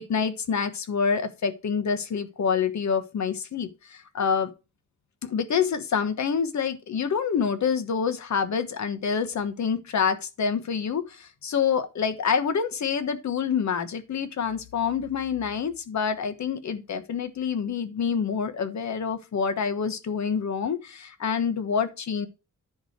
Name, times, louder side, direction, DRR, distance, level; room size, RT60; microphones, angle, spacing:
voice 1, 0.0-4.5 5.3-22.3, left 6 dB, 60° left, 1.2 m, -27 dB
10.0 x 4.9 x 4.5 m
wide cardioid pair, 170°, 31 cm